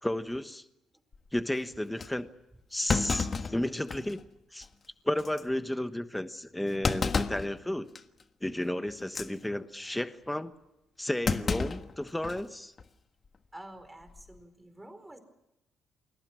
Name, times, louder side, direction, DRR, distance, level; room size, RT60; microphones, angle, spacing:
voice 1, 0.0-0.6 1.3-2.3 2.7-4.2 4.5-4.7 5.0-7.9 8.4-10.5 11.0-12.7, left 1 dB, 5° left, 10 dB, 1.2 m, -33 dB
Thump thud, 1.1-1.4 2.0-2.1 2.9-4.2 4.6-4.7 5.2-5.4 6.8-7.5 8.0-8.2 9.0-9.3 11.3-12.5 12.8-12.9 14.0-14.4, left 4 dB, 40° left, 1.5 m, -31 dB
voice 2, 13.5-15.2, right 1 dB, 10° right, 9 dB, 4.6 m, -48 dB
29.0 x 21.5 x 6.1 m, 0.90 s
cardioid pair, 90°, 0 cm